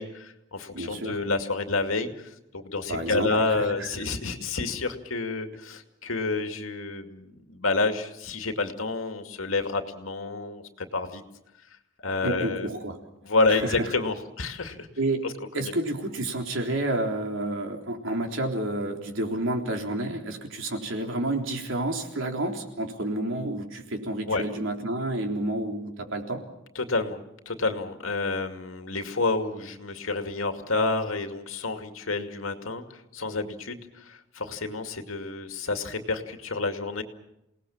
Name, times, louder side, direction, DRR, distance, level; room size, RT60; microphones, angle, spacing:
voice 1, 0.0-11.2 12.0-12.7 13.2-14.9 15.2-15.7 24.3-24.4 26.8-32.8 33.1-37.0, left 3 dB, 85° left, 6 dB, 2.4 m, -29 dB
voice 2, 0.7-1.2 2.9-3.3 3.6-3.7 12.2-13.0 13.5-13.9 15.0-15.2 15.5-26.4, right 1 dB, 70° right, 3 dB, 3.7 m, -30 dB
28.5 x 19.0 x 7.2 m, 0.85 s
head